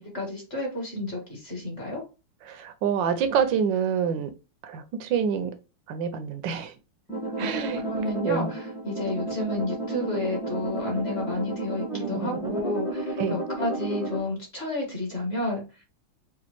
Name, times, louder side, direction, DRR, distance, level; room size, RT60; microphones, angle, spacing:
voice 1, 0.1-2.0 7.4-7.5 7.8-15.6, left 2 dB, 35° left, 1.4 m, -31 dB
voice 2, 2.4-4.3 4.6-5.5 5.9-6.7 7.4-7.8 8.2-8.5 13.2-13.4, right 7 dB, 70° right, 1.2 m, -26 dB
sound 1, 7.1-14.2, right 2 dB, 5° right, 0.5 m, -32 dB
5.1 x 2.4 x 2.9 m
omnidirectional pair, 2.3 m